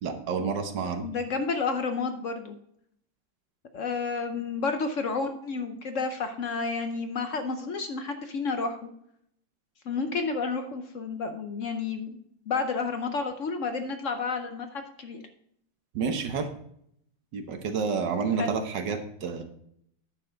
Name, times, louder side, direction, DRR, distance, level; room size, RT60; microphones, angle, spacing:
voice 1, 0.0-1.1 15.9-16.5 17.3-19.4, right 5 dB, 70° right, 6 dB, 1.6 m, -29 dB
voice 2, 1.0-2.6 3.7-8.8 9.9-12.2 12.5-15.2 18.4-18.5, left 4 dB, 60° left, 7 dB, 0.8 m, -30 dB
10.0 x 6.8 x 3.8 m, 0.70 s
omnidirectional pair, 2.0 m